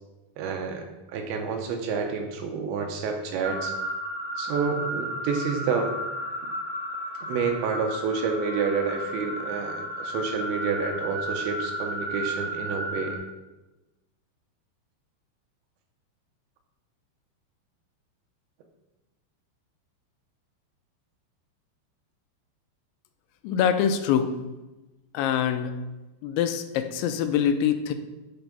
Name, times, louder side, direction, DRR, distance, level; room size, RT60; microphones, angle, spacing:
voice 1, 0.4-0.8 1.1-3.7 4.4-5.9 7.2-13.2, right 5 dB, 80° right, 4 dB, 3.1 m, -29 dB
sound 1, 3.4-13.2, equal, 40° right, 2.2 m, -33 dB
voice 2, 23.4-24.3 25.1-25.8 26.2-27.9, left 8 dB, 85° left, 8 dB, 2.8 m, -24 dB
9.3 x 4.6 x 5.3 m, 1.1 s
omnidirectional pair, 5.3 m